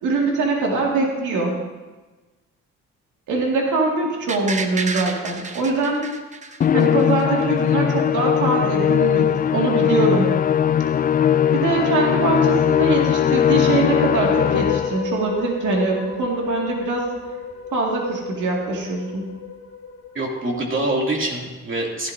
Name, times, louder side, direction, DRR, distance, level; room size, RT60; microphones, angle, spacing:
voice 1, 0.0-1.5 3.3-6.0 6.7-10.3 11.5-17.1 17.7-19.2, right 3 dB, 75° right, -1 dB, 2.2 m, -23 dB
sound 1, 4.3-7.2 7.6-7.7, right 3 dB, 25° right, 0.9 m, -30 dB
Musical instrument, 6.6-15.1, left 9 dB, 30° left, 0.4 m, -19 dB
sound 2, 13.7-20.9, left 6 dB, 55° left, 1.4 m, -32 dB
voice 2, 20.1-22.1, right 1 dB, 40° right, -1 dB, 2.7 m, -25 dB
15.0 x 12.0 x 2.7 m, 1.2 s
cardioid pair, 90°, 30 cm